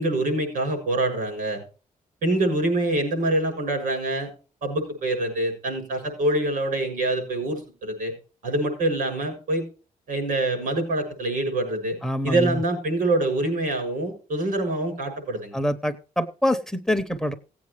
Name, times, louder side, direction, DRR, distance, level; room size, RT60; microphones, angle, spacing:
voice 1, 0.0-1.6 2.2-4.3 4.6-8.1 8.4-9.6 10.1-12.0 12.2-15.5, right 2 dB, 75° right, 4 dB, 6.9 m, -25 dB
voice 2, 12.0-12.6 15.5-17.3, left 1 dB, 5° left, 12 dB, 0.7 m, -25 dB
17.5 x 8.6 x 3.2 m, 0.36 s
cardioid pair, 130°, 14 cm